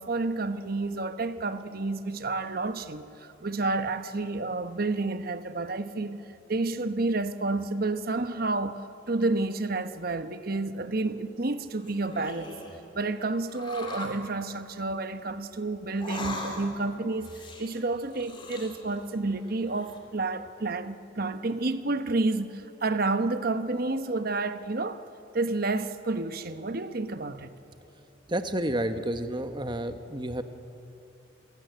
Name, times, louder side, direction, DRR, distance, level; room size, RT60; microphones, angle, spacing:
voice 1, 0.0-6.2 6.5-8.8 9.1-12.6 12.9-17.3 17.6-25.0 25.3-27.5, right 3 dB, 50° right, 1.0 m, -30 dB
sound 1, 11.6-12.8 13.5-14.2 15.9-16.8 17.2-19.1 19.4-20.0, left 2 dB, 25° left, 3.1 m, -40 dB
voice 2, 28.3-30.4, right 1 dB, 25° right, 1.1 m, -30 dB
26.5 x 16.5 x 9.3 m
head